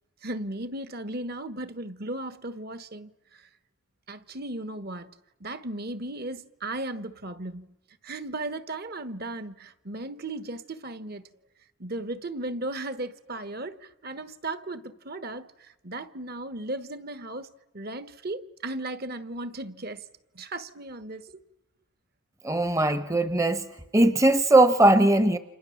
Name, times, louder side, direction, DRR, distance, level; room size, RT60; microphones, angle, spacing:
voice 1, 0.2-3.5 4.1-5.1 5.4-7.7 8.0-11.3 11.8-17.5 17.7-20.1 20.3-21.3, right 2 dB, 45° right, 1.2 m, -36 dB
voice 2, 22.4-23.7 23.9-25.4, right 2 dB, 15° right, 0.9 m, -20 dB
30.0 x 27.5 x 7.2 m
head